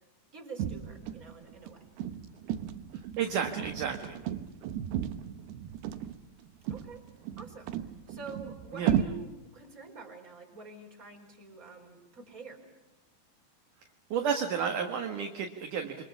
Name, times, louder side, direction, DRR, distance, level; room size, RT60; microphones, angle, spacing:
voice 1, 0.3-1.8 6.7-7.0 7.4-7.7 8.1-12.6, right 4 dB, 20° right, 2 dB, 4.9 m, -46 dB
sound 1, 0.6-9.0, right 10 dB, 80° right, 3.0 m, -35 dB
voice 2, 3.2-4.2 8.7-9.0 14.1-16.0, right 7 dB, 60° right, 4 dB, 2.8 m, -32 dB
28.5 x 24.5 x 7.1 m, 1.0 s
omnidirectional pair, 4.7 m